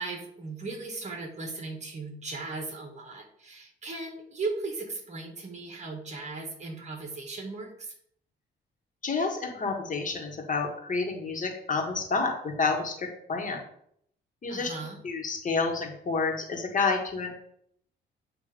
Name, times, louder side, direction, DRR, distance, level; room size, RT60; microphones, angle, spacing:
voice 1, 0.0-8.0 14.5-15.0, right 3 dB, 35° right, 3 dB, 1.9 m, -37 dB
voice 2, 9.0-13.6 14.4-14.7 15.0-17.3, left 4 dB, 40° left, 2 dB, 1.6 m, -29 dB
8.8 x 2.9 x 5.2 m, 0.68 s
cardioid pair, 90°, 20 cm